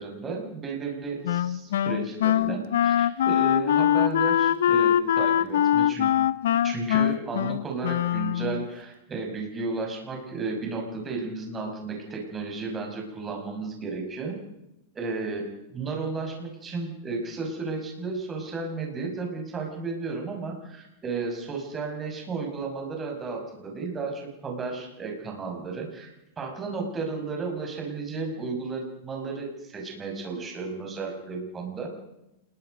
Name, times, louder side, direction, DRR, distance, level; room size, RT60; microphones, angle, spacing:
voice 1, 0.0-6.1 6.6-14.4 14.9-31.9, right 4 dB, 15° right, 1 dB, 5.7 m, -33 dB
Wind instrument woodwind instrument, 1.3-8.7, left 10 dB, 80° left, 0.9 m, -23 dB
28.0 x 21.0 x 5.2 m, 0.90 s
supercardioid pair, 155°, 0 cm